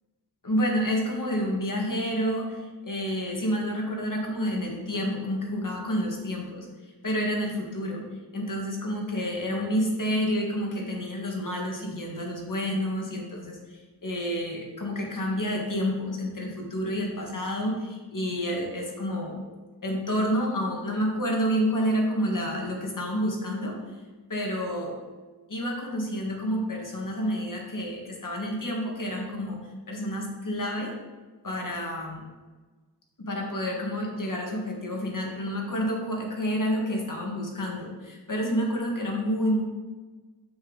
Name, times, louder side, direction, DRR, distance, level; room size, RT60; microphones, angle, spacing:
voice 1, 0.4-6.7 7.0-8.0 8.3-13.6 14.0-19.4 19.8-23.8 24.3-24.9 25.5-29.6 29.9-30.9 31.4-32.2 33.2-39.6, equal, 50° left, 0 dB, 1.7 m, -29 dB
7.1 x 6.6 x 4.0 m, 1.3 s
wide cardioid pair, 75°, 40 cm